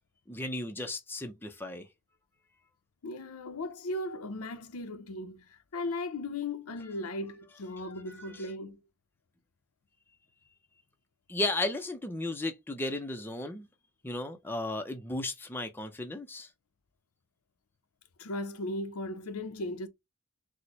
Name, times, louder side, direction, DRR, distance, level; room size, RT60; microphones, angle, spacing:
voice 1, 0.3-1.9 8.3-8.4 11.3-13.7 14.0-16.5, left 2 dB, 10° left, 0.5 m, -34 dB
voice 2, 3.0-8.8 18.2-19.9, left 2 dB, 85° left, 0.6 m, -37 dB
4.2 x 2.1 x 2.9 m
head